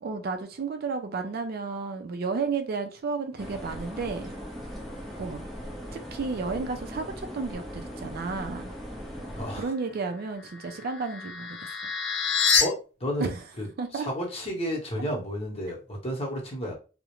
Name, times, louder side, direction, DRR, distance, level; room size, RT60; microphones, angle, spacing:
voice 1, 0.0-4.3 5.2-5.5 5.9-8.8 9.6-11.8 13.2-13.3 13.8-14.1, right 4 dB, 50° right, 0.4 m, -32 dB
sound 1, 3.4-9.7, equal, ahead, 0.6 m, -39 dB
voice 2, 9.3-9.7 12.6-16.7, equal, 30° left, 0.8 m, -32 dB
sound 2, 10.4-12.6, left 6 dB, 65° left, 0.5 m, -27 dB
2.4 x 2.0 x 2.9 m
head